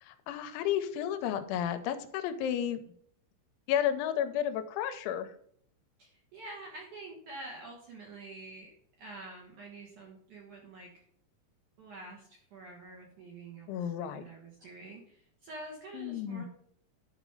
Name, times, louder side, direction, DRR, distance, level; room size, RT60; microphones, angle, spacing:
voice 1, 0.0-2.8 3.7-5.3 13.7-14.2 15.9-16.5, left 10 dB, 85° left, 9 dB, 3.0 m, -32 dB
voice 2, 6.0-8.7 9.0-11.0 11.8-16.4, right 2 dB, 65° right, -1 dB, 2.1 m, -47 dB
10.5 x 5.0 x 5.2 m, 0.64 s
omnidirectional pair, 5.5 m